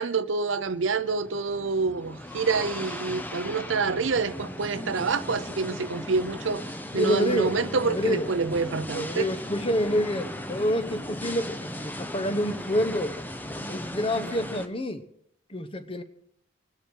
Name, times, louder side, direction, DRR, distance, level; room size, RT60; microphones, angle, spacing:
voice 1, 0.0-6.6 6.9-9.3, right 4 dB, 70° right, 0.7 m, -27 dB
sound 1, 0.6-14.7, left 1 dB, 10° left, 0.8 m, -37 dB
voice 2, 6.9-8.3 8.9-13.2 13.7-15.0 15.5-16.0, equal, 25° left, 1.0 m, -28 dB
24.5 x 10.0 x 4.6 m
head